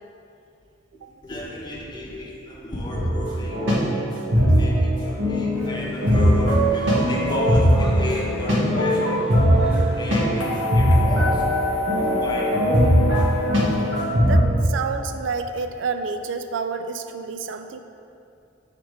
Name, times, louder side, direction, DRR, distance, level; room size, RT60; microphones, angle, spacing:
voice 1, 1.2-3.6 4.3-11.5 12.0-12.9, left 1 dB, 25° left, -4 dB, 1.0 m, -33 dB
sound 1, 2.9-14.4, equal, 90° right, 1.3 m, -20 dB
sound 2, 5.5-10.6, equal, 5° right, 0.8 m, -38 dB
sound 3, 10.4-14.6, left 5 dB, 85° left, 0.6 m, -28 dB
voice 2, 14.2-17.8, right 5 dB, 75° right, 8 dB, 0.3 m, -29 dB
6.3 x 3.7 x 4.8 m, 2.6 s
head